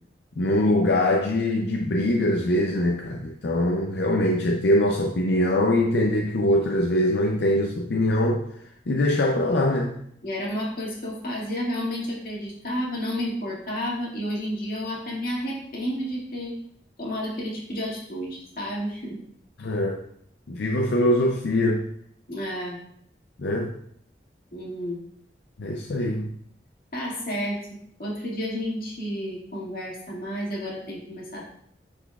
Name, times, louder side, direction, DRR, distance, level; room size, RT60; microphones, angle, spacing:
voice 1, 0.4-8.5 8.9-10.0 19.6-20.0 20.5-21.8 23.4-23.7 25.6-26.3, left 1 dB, 80° left, 2 dB, 0.5 m, -23 dB
voice 2, 10.2-16.6 17.0-19.2 22.3-22.8 24.5-25.0 26.9-27.6 28.0-31.5, equal, 55° left, -5 dB, 2.0 m, -31 dB
10.0 x 4.2 x 2.3 m, 0.67 s
head